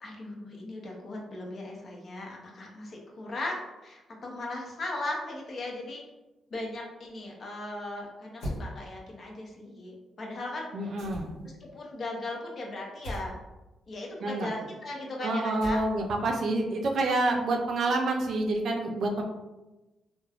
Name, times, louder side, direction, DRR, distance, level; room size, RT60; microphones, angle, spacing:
voice 1, 0.0-6.0 6.5-10.9 11.6-13.4 13.9-15.8, left 2 dB, 55° left, -1 dB, 0.7 m, -38 dB
sound 1, 8.4-8.7 11.0-11.5 13.0-13.3 15.6-16.1, equal, 85° left, 1.0 m, -37 dB
voice 2, 10.7-11.3 14.2-14.5 15.2-19.2, right 2 dB, 70° right, 2 dB, 0.4 m, -28 dB
3.2 x 2.1 x 2.3 m, 1.0 s
cardioid pair, 70°, 0 cm